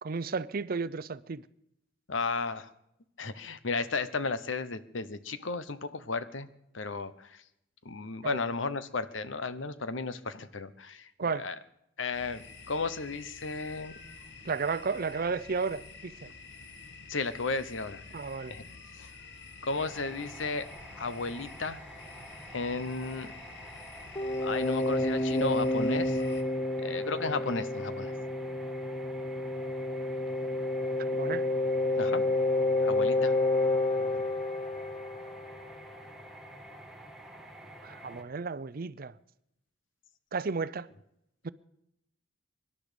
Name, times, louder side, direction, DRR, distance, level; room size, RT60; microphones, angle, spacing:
voice 1, 0.0-1.4 8.2-8.4 11.2-11.5 14.4-16.3 18.1-18.5 31.1-31.5 34.0-34.3 37.8-39.2 40.3-40.9 41.4-41.5, right 4 dB, 50° right, 0.6 m, -33 dB
voice 2, 2.1-2.7 3.2-6.5 6.7-7.4 7.8-11.1 11.3-11.5 12.0-13.9 17.1-18.0 18.5-18.6 19.0-19.1 19.6-20.6 21.0-21.8 22.5-23.3 24.4-26.2 26.8-28.1 32.0-32.2 32.8-33.3, left 3 dB, 90° left, 1.0 m, -34 dB
sound 1, 12.1-26.4, left 4 dB, 65° left, 1.7 m, -49 dB
sound 2, 19.7-38.2, right 1 dB, ahead, 1.9 m, -49 dB
sound 3, 24.2-35.8, left 2 dB, 20° left, 0.5 m, -29 dB
24.5 x 11.0 x 5.2 m
head